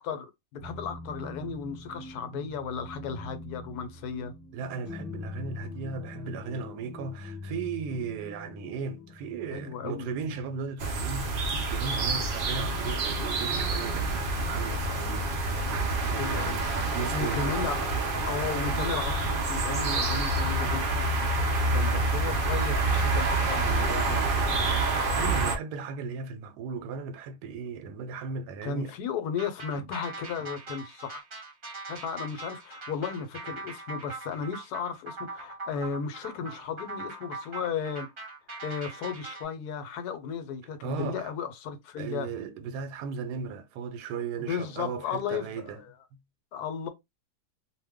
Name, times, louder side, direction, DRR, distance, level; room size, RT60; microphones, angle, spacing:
voice 1, 0.0-4.3 9.5-10.1 16.2-16.6 17.1-17.8 18.3-20.9 21.6-24.2 28.6-31.2 31.9-38.1 38.6-42.3 44.4-45.9 46.5-46.9, left 6 dB, 80° left, 1.1 m, -35 dB
sound 1, 0.6-11.3, left 2 dB, 15° left, 0.7 m, -43 dB
voice 2, 4.5-16.6 16.9-17.5 24.9-28.9 29.8-29.9 40.8-41.2 42.0-45.8, right 5 dB, 90° right, 1.2 m, -36 dB
sound 2, 10.8-25.6, right 2 dB, 60° right, 0.5 m, -27 dB
sound 3, 29.4-39.5, right 3 dB, 40° right, 1.0 m, -41 dB
2.6 x 2.1 x 3.5 m
omnidirectional pair, 1.7 m